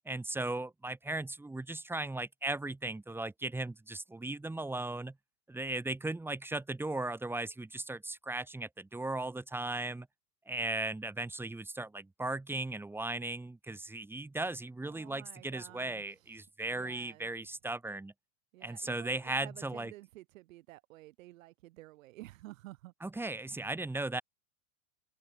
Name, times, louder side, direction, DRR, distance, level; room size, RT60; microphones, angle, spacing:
voice 1, 0.0-5.1 5.5-10.1 10.5-18.1 18.6-19.9 23.0-24.2, right 2 dB, 5° right, 1.5 m, -37 dB
voice 2, 14.8-16.0 16.7-17.3 18.5-22.9, right 18 dB, 70° right, 4.2 m, -52 dB
open air
supercardioid pair, 135°, 41 cm